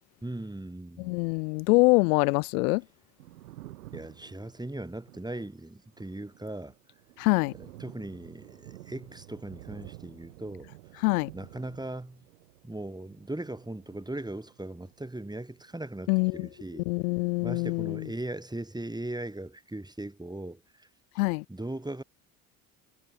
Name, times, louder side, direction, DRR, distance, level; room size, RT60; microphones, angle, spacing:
voice 1, 0.2-1.2 3.9-6.7 7.5-10.7 11.3-12.2 12.6-16.9 17.4-20.9 21.5-22.0, right 1 dB, 10° right, 7.7 m, -39 dB
voice 2, 1.0-2.8 7.2-7.5 11.0-11.3 16.1-16.5 16.9-18.1 21.2-21.4, left 28 dB, 80° left, 0.7 m, -24 dB
Thunder, 3.0-17.4 17.7-18.9, right 16 dB, 85° right, 2.2 m, -52 dB
hypercardioid pair, 60°, 44 cm